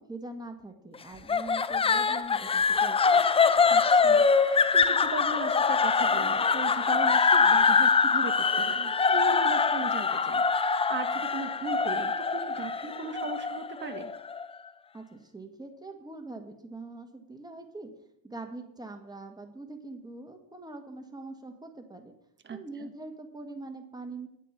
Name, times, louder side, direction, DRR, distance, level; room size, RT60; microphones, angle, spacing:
voice 1, 0.0-3.2 14.9-17.9 18.2-22.1 22.5-24.3, right 2 dB, 10° right, 5 dB, 1.7 m, -43 dB
sound 1, 1.3-14.5, left 5 dB, 15° left, 0.4 m, -24 dB
voice 2, 3.7-14.1 22.4-22.9, right 5 dB, 25° right, 8 dB, 1.3 m, -38 dB
9.1 x 8.4 x 5.7 m, 0.77 s
cardioid pair, 105°, 43 cm